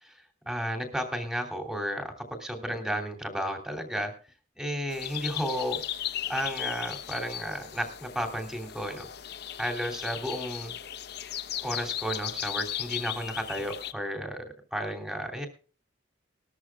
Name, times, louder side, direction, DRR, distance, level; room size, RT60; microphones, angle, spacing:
voice 1, 0.0-4.1 4.6-5.8 6.3-9.0 9.6-10.8 11.6-14.4 14.7-15.5, equal, 5° right, 4 dB, 2.8 m, -33 dB
sound 1, 4.9-13.9, left 11 dB, 55° left, 0.8 m, -36 dB
20.0 x 13.5 x 2.3 m, 0.39 s
head